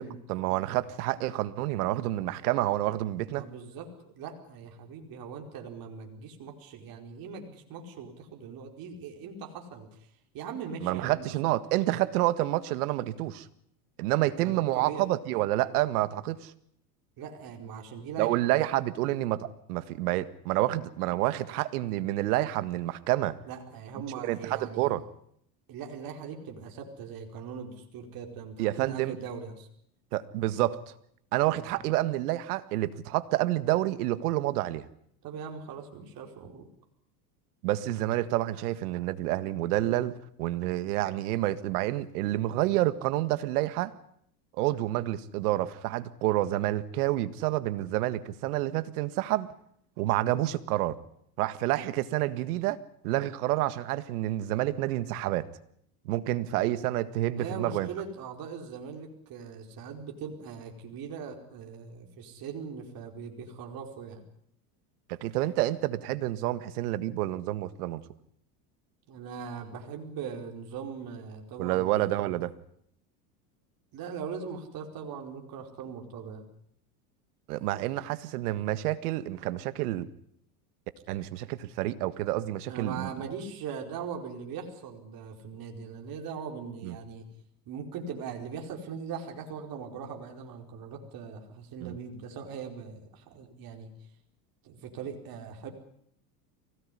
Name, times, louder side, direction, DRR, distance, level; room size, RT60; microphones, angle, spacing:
voice 1, 0.3-3.4 10.8-13.5 14.0-16.5 18.2-23.4 24.2-25.0 28.6-29.2 30.1-30.8 31.3-34.9 37.6-40.1 40.4-43.9 44.5-49.5 50.0-51.0 51.4-52.8 53.0-55.5 56.1-57.9 65.1-68.0 71.6-72.5 77.5-80.1 81.1-83.1 86.8-87.0 91.8-92.0, right 15 dB, 75° right, 13 dB, 1.8 m, -28 dB
voice 2, 3.3-9.9 10.3-11.3 14.4-15.1 17.2-18.3 23.5-24.9 25.7-29.7 31.6-31.8 35.2-36.7 57.4-64.2 69.1-72.1 73.9-76.5 82.7-87.3 87.7-93.9 94.6-95.7, right 6 dB, 50° right, 3 dB, 4.8 m, -40 dB
24.5 x 18.0 x 10.0 m, 0.71 s
supercardioid pair, 100°, 46 cm